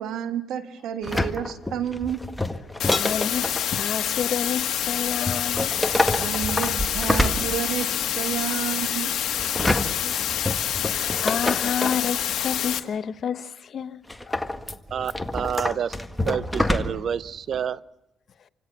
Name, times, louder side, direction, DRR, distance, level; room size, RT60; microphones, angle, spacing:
voice 1, 0.0-2.2 6.1-9.1 9.4-9.9, right 10 dB, 80° right, 1.8 m, -31 dB
sound 1, 1.0-3.7 5.3-8.0 9.4-12.1 14.1-17.2 17.5-17.6, left 1 dB, 10° left, 1.6 m, -27 dB
sound 2, 2.8-12.8, left 10 dB, 70° left, 1.6 m, -27 dB
voice 2, 2.9-5.7 8.2-8.3 9.7-10.4 10.8-14.5, left 7 dB, 55° left, 0.9 m, -30 dB
voice 3, 14.9-16.0 16.2-17.8, right 8 dB, 60° right, 0.7 m, -28 dB
27.0 x 17.0 x 7.1 m
cardioid pair, 90°, 0 cm